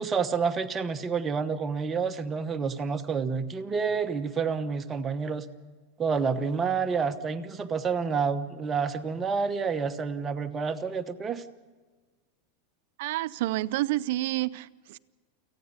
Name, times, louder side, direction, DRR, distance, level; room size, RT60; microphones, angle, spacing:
voice 1, 0.0-5.5 6.0-11.4, right 5 dB, 20° right, 1.1 m, -29 dB
voice 2, 13.0-15.0, right 17 dB, 65° right, 0.5 m, -29 dB
28.5 x 9.6 x 9.5 m
supercardioid pair, 135°, 0 cm